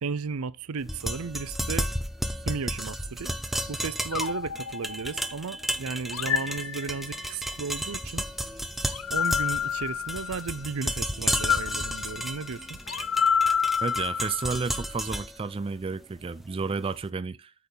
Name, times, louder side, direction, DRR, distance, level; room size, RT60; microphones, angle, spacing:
voice 1, 0.0-1.9 2.5-3.3 3.7-8.3 9.1-12.8, right 5 dB, 80° right, 0.6 m, -34 dB
sound 1, 0.8-16.9, equal, ahead, 0.7 m, -33 dB
sound 2, 4.1-5.5 6.1-7.4 8.9-10.6 11.3-14.8, left 7 dB, 70° left, 0.7 m, -29 dB
sound 3, 6.1-13.3, left 2 dB, 25° left, 3.0 m, -57 dB
voice 2, 13.8-17.5, right 4 dB, 25° right, 0.4 m, -31 dB
8.5 x 6.9 x 4.0 m
head